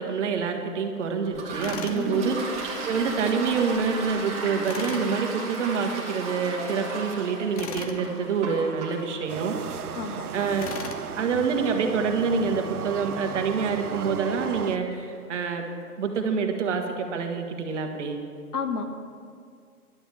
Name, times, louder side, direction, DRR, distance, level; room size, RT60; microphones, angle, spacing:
voice 1, 0.0-10.0 10.3-10.7 11.1-15.7 16.0-18.2, right 5 dB, 50° right, 4 dB, 1.5 m, -27 dB
Toilet flush, 1.3-14.7, right 3 dB, 15° right, 1.2 m, -37 dB
Tools, 1.6-2.0 4.6-5.1 7.6-8.0 10.6-11.0, left 5 dB, 25° left, 0.6 m, -36 dB
voice 2, 1.9-2.3 9.9-10.3 18.5-18.9, left 5 dB, 75° left, 5 dB, 1.5 m, -30 dB
sound 1, 9.3-14.8, right 7 dB, 70° right, 0.8 m, -35 dB
11.5 x 7.1 x 7.2 m, 2.1 s
hypercardioid pair, 140°, 46 cm